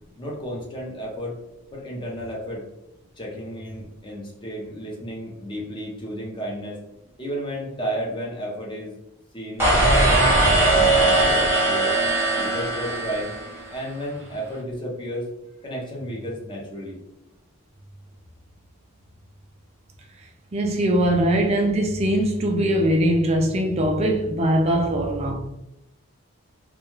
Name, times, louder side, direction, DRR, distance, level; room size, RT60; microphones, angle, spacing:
voice 1, 0.2-1.4 1.7-2.7 3.2-6.8 7.2-9.0 9.3-12.0 12.4-13.3 13.7-15.3 15.6-17.0, equal, 20° left, 0.5 m, -32 dB
sound 1, 9.6-13.8, right 2 dB, 10° right, 0.8 m, -19 dB
voice 2, 20.5-25.3, right 1 dB, 30° right, 0.3 m, -21 dB
2.3 x 2.3 x 3.0 m
head